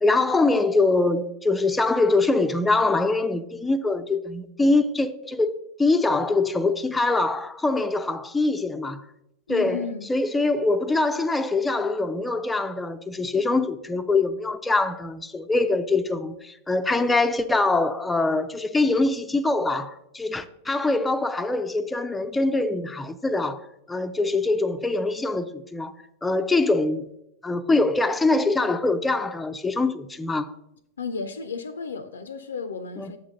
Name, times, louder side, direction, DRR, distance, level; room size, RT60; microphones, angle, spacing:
voice 1, 0.0-5.5 5.8-9.0 9.5-25.9 26.2-27.0 27.4-30.5 33.0-33.2, left 3 dB, 10° left, 0.4 m, -23 dB
voice 2, 9.5-10.1 31.0-33.2, left 5 dB, 70° left, 0.4 m, -33 dB
7.1 x 3.7 x 6.1 m
figure-of-eight pair, 90°, 0 cm